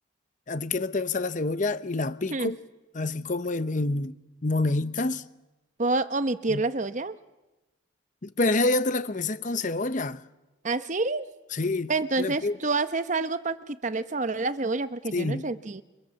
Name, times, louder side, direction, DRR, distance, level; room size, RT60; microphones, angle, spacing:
voice 1, 0.5-2.6 2.9-4.2 4.4-5.2 6.5-6.6 8.2-10.2 11.5-11.9 12.2-12.6 15.1-15.5, left 2 dB, 40° left, 0.8 m, -27 dB
voice 2, 5.8-7.2 10.6-11.3 11.9-15.8, right 3 dB, 40° right, 0.9 m, -28 dB
29.5 x 24.5 x 7.0 m
head